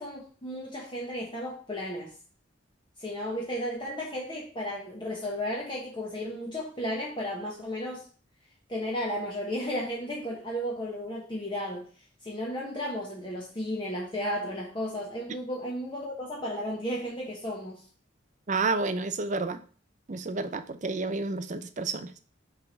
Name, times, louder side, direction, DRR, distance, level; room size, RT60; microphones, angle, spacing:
voice 1, 0.0-2.1 3.0-8.0 8.7-11.9 12.2-17.8, equal, 25° left, -3 dB, 1.1 m, -34 dB
voice 2, 18.5-19.6 20.1-22.1, right 3 dB, 40° right, 12 dB, 0.6 m, -30 dB
5.8 x 3.4 x 5.2 m, 0.41 s
head